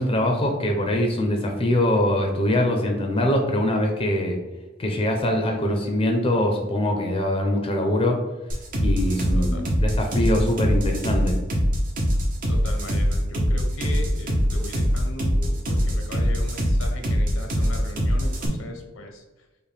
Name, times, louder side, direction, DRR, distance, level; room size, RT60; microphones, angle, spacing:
voice 1, 0.0-4.4 4.8-8.2 8.8-11.4, left 1 dB, 30° left, 2 dB, 0.6 m, -23 dB
sound 1, 8.5-18.5, equal, 45° right, 0.8 m, -23 dB
voice 2, 9.3-9.7 12.5-19.2, left 1 dB, 80° left, 3 dB, 0.8 m, -38 dB
5.1 x 2.2 x 3.3 m, 1.2 s
head